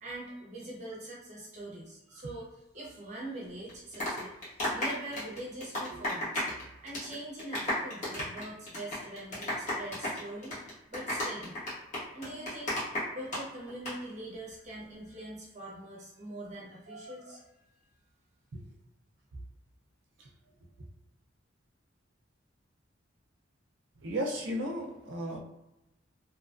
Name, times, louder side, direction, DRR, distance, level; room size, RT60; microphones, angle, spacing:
voice 1, 0.0-2.5 2.7-6.3 6.8-11.6 12.1-12.8 13.1-17.5, right 1 dB, 40° right, -4 dB, 0.7 m, -43 dB
sound 1, 3.7-6.6 6.9-7.1 7.4-13.4 13.7-13.9, left 1 dB, 40° left, 1.2 m, -33 dB
voice 2, 12.1-12.4 16.9-17.4 18.5-18.7 19.3-19.4 20.2-20.3 20.8-20.9 24.0-25.4, equal, 70° right, 1 dB, 0.5 m, -37 dB
2.8 x 2.3 x 2.5 m, 0.93 s
head